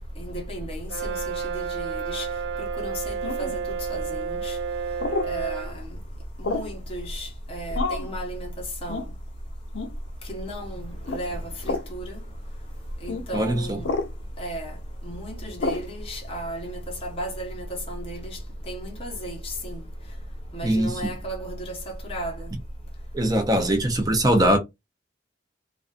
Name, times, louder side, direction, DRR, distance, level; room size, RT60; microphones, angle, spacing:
voice 1, 0.2-2.3 2.6-4.6 5.2-6.0 6.4-8.5 8.8-9.0 10.3-12.2 13.0-13.9 14.4-14.8 15.0-18.4 18.7-19.8 20.5-22.5, right 1 dB, 30° left, 0.9 m, -33 dB
Brass instrument, 0.9-5.8, right 6 dB, 75° right, 0.3 m, -31 dB
sound 1, 3.2-3.6 5.0-5.3 6.4-6.8 7.7-8.1 8.9-9.1 9.7-10.0 11.0-11.2 11.6-11.9 13.1-13.2 13.8-14.1 15.6-15.9, left 3 dB, 75° left, 0.4 m, -29 dB
voice 2, 13.3-13.8 20.6-21.0 23.1-24.6, right 1 dB, 20° right, 0.5 m, -21 dB
2.5 x 2.3 x 2.4 m
head